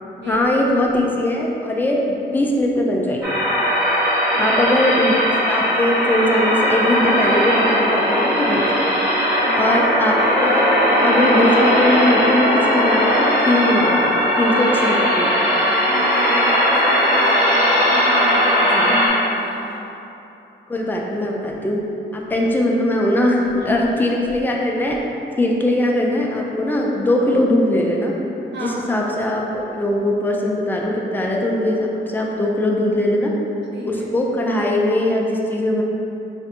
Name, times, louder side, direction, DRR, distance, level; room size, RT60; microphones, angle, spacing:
voice 1, 0.2-3.4 4.4-5.2 5.5-8.6 9.6-10.1 10.4-10.7 11.0-15.3 18.7-19.0 20.7-21.8 22.1-25.0 25.4-28.1 28.6-33.3 33.9-35.8, left 1 dB, 10° left, -1 dB, 0.3 m, -20 dB
sound 1, 3.2-19.1, equal, 15° right, 0.8 m, -18 dB
voice 2, 15.6-19.8 23.6-24.3 28.5-28.9 33.7-34.2, right 1 dB, 65° right, -3 dB, 0.5 m, -31 dB
5.5 x 2.5 x 2.6 m, 2.9 s
wide cardioid pair, 175°, 19 cm